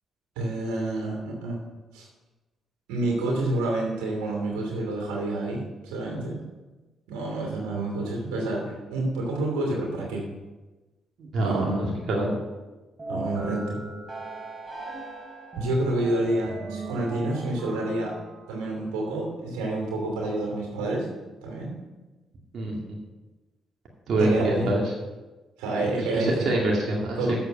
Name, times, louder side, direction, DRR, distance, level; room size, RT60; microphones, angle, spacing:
voice 1, 0.4-1.6 1.9-2.1 2.9-6.4 7.1-10.2 11.4-11.8 13.1-13.8 15.6-18.1 18.5-21.1 21.4-21.8 24.2-24.7 25.6-26.5 27.2-27.4, right 2 dB, 90° right, -1 dB, 2.8 m, -28 dB
voice 2, 11.2-12.4 22.5-22.8 24.1-24.9 26.0-27.4, right 1 dB, 60° right, -2 dB, 2.2 m, -25 dB
sound 1, 13.0-18.7, right 2 dB, 35° right, 3.3 m, -38 dB
8.0 x 7.4 x 6.8 m, 1.2 s
supercardioid pair, 50°, 0 cm